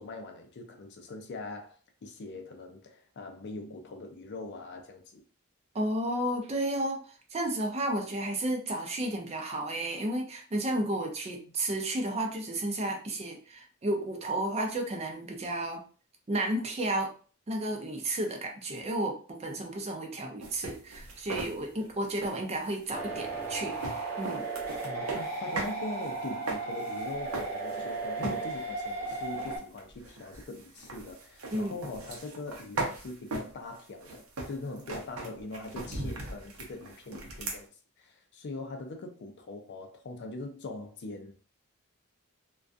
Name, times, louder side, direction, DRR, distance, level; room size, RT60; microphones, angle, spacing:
voice 1, 0.0-5.2 24.8-37.7 38.0-41.3, left 2 dB, 55° left, 0.4 m, -42 dB
voice 2, 5.7-7.0 7.3-15.8 16.3-17.1 17.5-23.8 24.2-24.5 31.5-31.8, right 1 dB, 30° right, 0.5 m, -32 dB
sound 1, 20.4-25.8 26.1-28.0 28.2-28.7 29.1-37.6, right 2 dB, 85° right, 0.6 m, -39 dB
sound 2, 22.9-29.6, right 3 dB, 10° left, 0.9 m, -35 dB
2.4 x 2.3 x 2.4 m
head